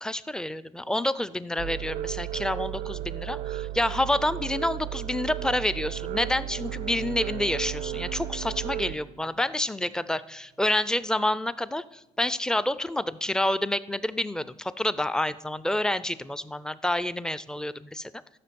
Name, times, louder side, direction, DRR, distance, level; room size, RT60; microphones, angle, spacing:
voice 1, 0.0-18.1, left 1 dB, 5° left, 16 dB, 0.4 m, -28 dB
sound 1, 1.6-9.0, right 13 dB, 75° right, 0.4 m, -34 dB
Bowed string instrument, 5.1-10.6, right 5 dB, 80° left, 2.1 m, -47 dB
14.0 x 5.9 x 6.9 m, 0.98 s
cardioid pair, 105°, 12 cm